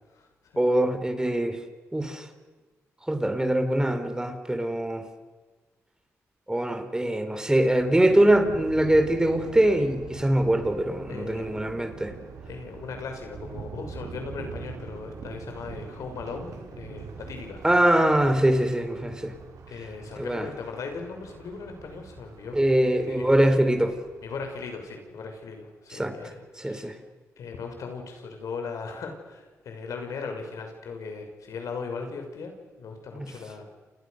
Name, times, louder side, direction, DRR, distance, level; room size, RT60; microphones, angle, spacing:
voice 1, 0.6-1.6 1.9-2.3 3.1-5.0 6.5-12.1 17.6-19.3 20.2-20.5 22.5-23.9 25.9-26.2 26.6-26.9 33.1-33.3, right 1 dB, 10° right, 8 dB, 4.0 m, -23 dB
Thunder, 7.4-24.8, right 5 dB, 85° right, 4.9 m, -43 dB
voice 2, 11.1-11.5 12.4-17.6 19.7-22.6 23.1-23.4 24.2-26.9 27.4-32.5 32.8-33.7, left 4 dB, 85° left, 4 dB, 6.2 m, -38 dB
29.5 x 29.0 x 6.7 m, 1.3 s
cardioid pair, 75°, 5 cm